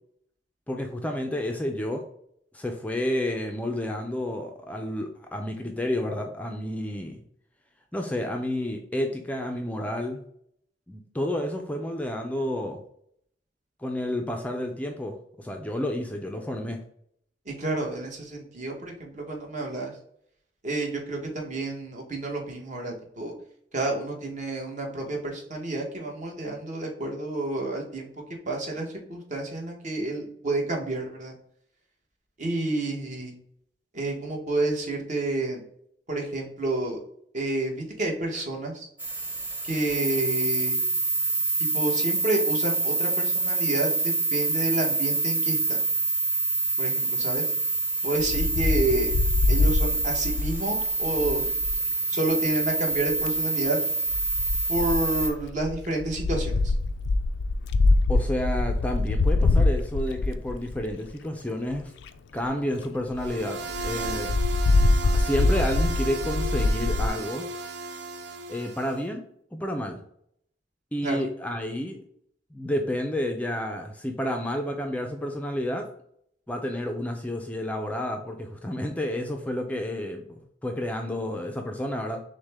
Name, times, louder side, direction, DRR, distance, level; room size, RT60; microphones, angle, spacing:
voice 1, 0.7-2.0 2.5-7.2 7.9-10.2 10.9-12.8 13.8-16.8 58.1-61.9 62.3-64.4 65.0-67.5 68.5-69.2 69.5-70.0 70.9-72.0 72.5-75.9 76.5-82.2, left 1 dB, 10° left, 3 dB, 0.4 m, -30 dB
voice 2, 17.5-19.9 20.6-23.3 23.7-28.1 28.5-31.3 32.4-33.3 33.9-35.6 36.1-37.0 37.3-38.9 39.6-40.8 41.6-45.8 46.8-47.5 48.0-49.1 49.5-51.5 52.1-53.8 54.7-56.7 71.0-71.2, right 2 dB, 45° right, 0 dB, 1.1 m, -29 dB
sound 1, 39.0-55.3, right 3 dB, 10° right, 0.9 m, -26 dB
Wind, 48.2-51.8 52.9-53.4 54.1-61.1 61.7-61.8 62.0-62.1 62.4-62.5 62.8-62.9 63.1-63.3 63.7-67.1, left 2 dB, 80° left, 0.3 m, -24 dB
sound 2, 63.2-69.0, right 2 dB, 80° right, 0.5 m, -35 dB
6.2 x 2.2 x 3.4 m, 0.68 s
head